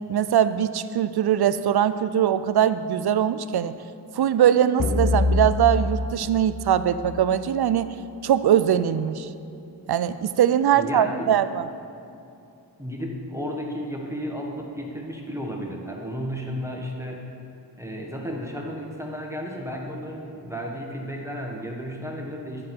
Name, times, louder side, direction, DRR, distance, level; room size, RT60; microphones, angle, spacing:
voice 1, 0.1-3.8 4.1-7.9 8.2-9.3 9.9-11.7, right 10 dB, 60° right, 13 dB, 0.5 m, -21 dB
sound 1, 4.8-7.4, left 3 dB, 50° left, 1.2 m, -25 dB
voice 2, 10.7-11.3 12.8-17.3 17.8-22.7, equal, 5° right, 0 dB, 1.5 m, -33 dB
10.5 x 7.4 x 4.5 m, 2.7 s
cardioid pair, 65°, 45 cm